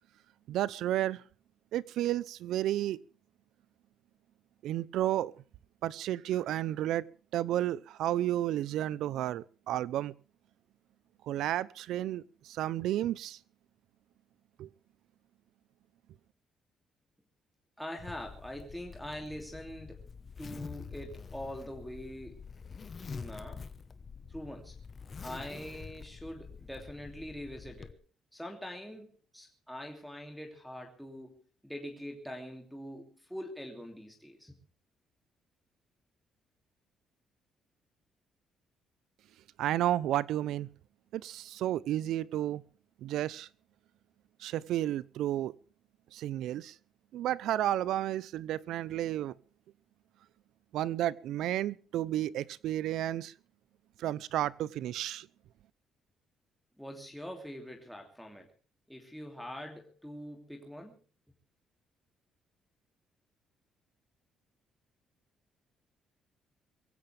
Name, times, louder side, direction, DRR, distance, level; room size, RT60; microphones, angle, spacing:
voice 1, 0.5-1.2 1.7-3.0 4.6-5.3 5.8-7.0 7.3-10.1 11.3-13.4 14.6-14.7 39.6-40.7 41.1-42.6 43.0-43.5 44.4-45.5 46.1-46.7 47.1-49.3 50.7-53.3 54.0-55.3, right 13 dB, 80° right, 0.7 m, -32 dB
voice 2, 17.8-20.0 20.4-22.4 23.0-23.6 24.3-24.8 25.2-28.0 28.3-34.6 56.8-58.5 58.9-61.0, equal, ahead, 2.9 m, -44 dB
Zipper (clothing), 18.0-27.9, left 5 dB, 30° left, 1.2 m, -47 dB
23.0 x 16.0 x 3.5 m
cardioid pair, 135°, 0 cm